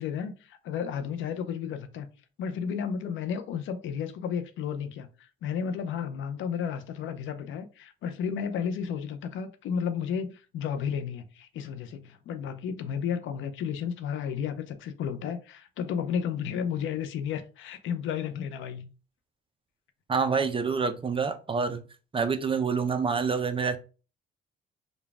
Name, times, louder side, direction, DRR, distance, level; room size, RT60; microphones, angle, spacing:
voice 1, 0.0-2.1 2.4-18.9, left 7 dB, 80° left, 0.6 m, -33 dB
voice 2, 20.1-21.8 22.1-23.8, right 5 dB, 25° right, 0.5 m, -27 dB
3.9 x 2.3 x 3.4 m
cardioid pair, 90°, 20 cm